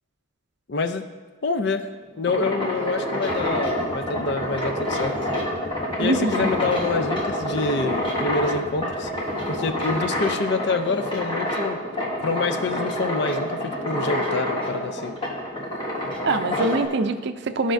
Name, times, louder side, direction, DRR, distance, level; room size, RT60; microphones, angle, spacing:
voice 1, 0.7-1.0 1.4-1.9 2.2-5.2 6.0-9.1 9.5-11.8 12.2-15.2, left 3 dB, 55° left, 8 dB, 0.5 m, -26 dB
sound 1, 2.0-16.9, left 1 dB, 25° left, 1.2 m, -27 dB
sound 2, 3.3-10.3, equal, ahead, 0.5 m, -39 dB
voice 2, 6.0-6.5 16.3-17.7, right 2 dB, 55° right, 9 dB, 0.4 m, -24 dB
14.0 x 5.0 x 2.6 m, 1.4 s
head